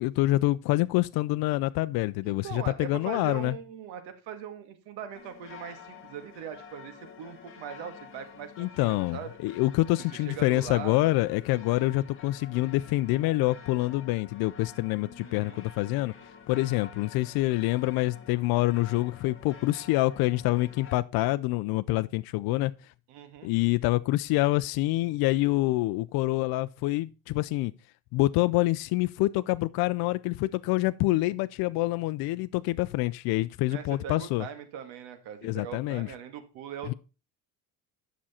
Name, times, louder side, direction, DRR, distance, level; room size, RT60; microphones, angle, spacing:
voice 1, 0.0-3.5 8.6-16.1 16.5-22.7 23.4-27.7 28.1-34.4 35.4-36.1, left 18 dB, 65° left, 0.5 m, -26 dB
voice 2, 2.2-9.3 10.1-11.1 15.2-15.6 23.1-23.5 33.7-36.9, right 8 dB, 85° right, 1.9 m, -41 dB
sound 1, 5.1-21.0, left 7 dB, 30° left, 1.6 m, -49 dB
10.0 x 6.2 x 4.3 m
cardioid pair, 145°, 40 cm